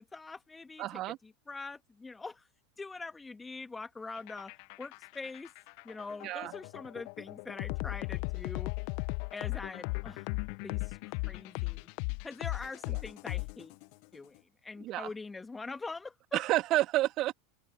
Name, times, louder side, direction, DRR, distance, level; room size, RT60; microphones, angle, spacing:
voice 1, 0.0-2.5 2.8-4.5 4.8-5.5 5.8-8.7 9.3-10.3 10.6-11.9 12.2-13.8 14.1-16.4, left 3 dB, 15° left, 2.1 m, -44 dB
voice 2, 0.8-1.2 6.2-6.5 12.9-13.0 14.8-15.1 16.3-17.3, right 16 dB, 40° right, 2.6 m, -30 dB
sound 1, 4.2-13.9, left 36 dB, 50° left, 1.4 m, -37 dB
open air
figure-of-eight pair, 85°, 0 cm